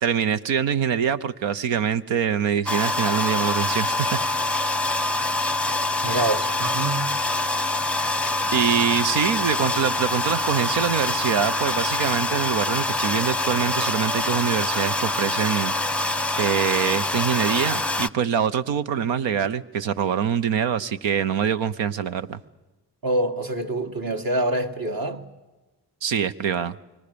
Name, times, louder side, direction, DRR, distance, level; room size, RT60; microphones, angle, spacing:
voice 1, 0.0-4.2 8.5-16.1 16.4-22.4 26.0-26.7, right 8 dB, 85° right, 0.9 m, -24 dB
sound 1, 2.7-18.1, left 2 dB, 5° left, 0.8 m, -25 dB
voice 2, 6.0-7.1 23.0-25.3, right 1 dB, 50° right, 2.2 m, -26 dB
28.5 x 24.5 x 6.9 m
supercardioid pair, 45°, 44 cm